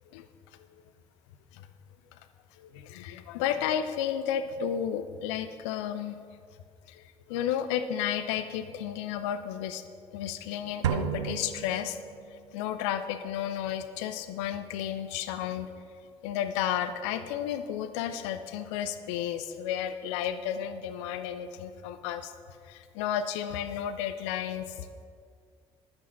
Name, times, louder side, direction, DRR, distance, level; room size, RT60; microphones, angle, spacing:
voice 1, 2.6-6.2 6.9-9.8 10.1-12.0 12.5-15.7 16.2-22.3 22.6-25.0, left 9 dB, 80° left, 10 dB, 0.6 m, -32 dB
sound 1, 10.8-12.5, right 7 dB, 90° right, 0.4 m, -32 dB
11.0 x 8.8 x 5.9 m, 2.2 s
hypercardioid pair, 45°, 15 cm